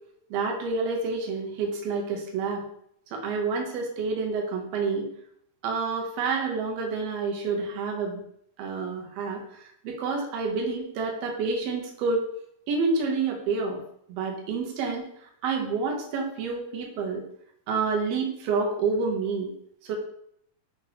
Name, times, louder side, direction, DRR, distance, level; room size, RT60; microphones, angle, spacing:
voice 1, 0.3-2.6 3.1-5.0 5.6-8.2 8.6-9.4 9.8-12.2 12.7-13.8 14.1-15.1 15.4-17.2 17.7-19.5 19.8-20.0, right 4 dB, 70° right, 1 dB, 1.6 m, -28 dB
5.8 x 2.9 x 2.8 m, 0.70 s
omnidirectional pair, 3.7 m